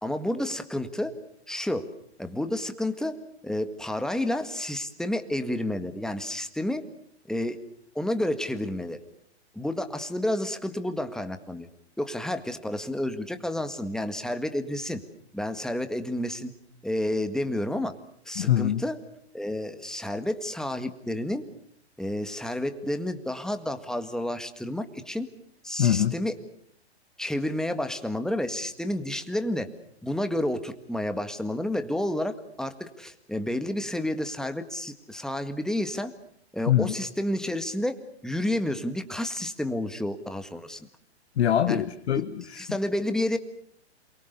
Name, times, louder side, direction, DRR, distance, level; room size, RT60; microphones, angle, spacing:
voice 1, 0.0-1.1 1.5-1.9 2.2-3.2 3.4-6.8 7.3-7.6 8.0-9.0 9.5-11.7 12.0-15.0 15.3-16.5 16.8-17.9 18.3-19.0 19.3-21.4 22.0-25.3 25.6-26.4 27.2-29.7 30.0-36.1 36.5-40.9 41.7-41.8 42.6-43.4, left 1 dB, ahead, 1.8 m, -30 dB
voice 2, 18.4-18.8 25.8-26.1 36.7-36.9 41.4-42.6, left 11 dB, 70° left, 1.3 m, -24 dB
28.0 x 23.5 x 6.8 m
hypercardioid pair, 120°, 34 cm